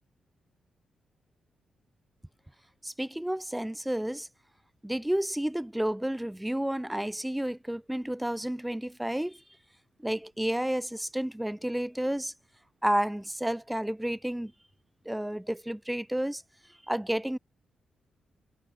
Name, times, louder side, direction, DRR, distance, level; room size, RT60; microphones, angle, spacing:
voice 1, 2.8-4.3 4.8-9.4 10.0-12.3 12.8-14.5 15.1-16.4 16.9-17.4, right 1 dB, 5° right, 2.4 m, -31 dB
cardioid pair, 95°, 0 cm